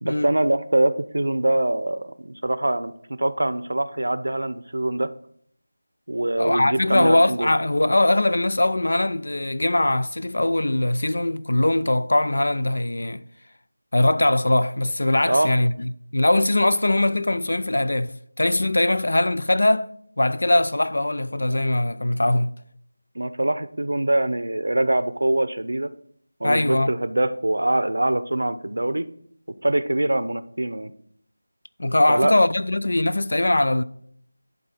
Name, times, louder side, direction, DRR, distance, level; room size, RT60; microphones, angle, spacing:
voice 1, 0.0-2.9 3.2-5.1 6.1-7.5 15.3-15.5 23.2-25.9 26.4-29.1 29.6-30.9 32.1-32.3, right 1 dB, 85° right, 0.7 m, -23 dB
voice 2, 6.4-13.2 13.9-19.9 20.2-22.5 26.4-26.9 31.8-33.8, left 1 dB, 70° left, 0.5 m, -21 dB
11.0 x 4.0 x 5.8 m
figure-of-eight pair, 175°, 0 cm